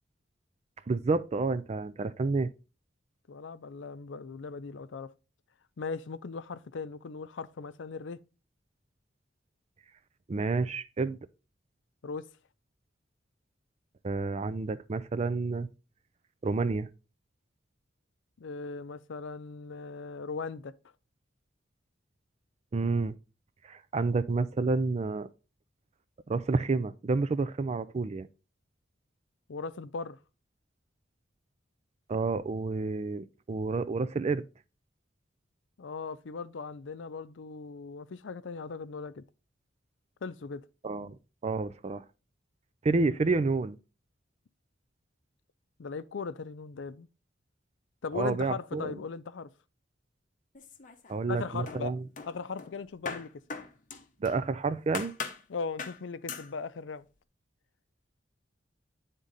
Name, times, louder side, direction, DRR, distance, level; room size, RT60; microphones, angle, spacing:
voice 1, 0.9-2.5 10.3-11.2 14.0-15.7 16.4-16.9 22.7-23.1 23.7-25.3 26.3-28.3 32.1-34.4 40.8-41.2 41.4-42.0 42.8-43.8 48.1-48.9 51.1-52.0 54.2-55.1, right 3 dB, 35° right, 0.4 m, -29 dB
voice 2, 3.3-5.1 5.8-8.2 12.0-12.3 18.4-20.7 29.5-30.2 35.8-39.2 40.2-40.6 45.8-47.1 48.0-49.5 51.3-51.9 52.3-53.3 55.5-57.1, left 4 dB, 85° left, 0.5 m, -38 dB
sound 1, 50.5-51.3 51.7-54.5 54.9-55.4 55.8-56.0 56.3-56.5, left 5 dB, 45° left, 0.8 m, -40 dB
9.7 x 3.7 x 3.9 m
head